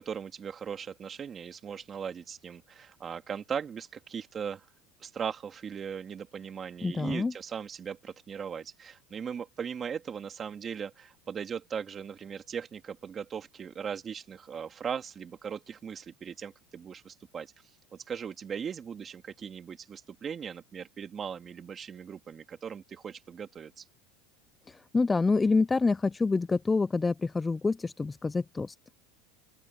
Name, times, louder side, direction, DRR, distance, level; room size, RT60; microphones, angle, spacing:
voice 1, 0.0-4.6 5.0-17.5 17.9-23.8, right 7 dB, 30° right, 2.2 m, -38 dB
voice 2, 6.8-7.3 24.7-28.7, left 3 dB, 15° left, 0.3 m, -27 dB
open air
supercardioid pair, 125°, 0 cm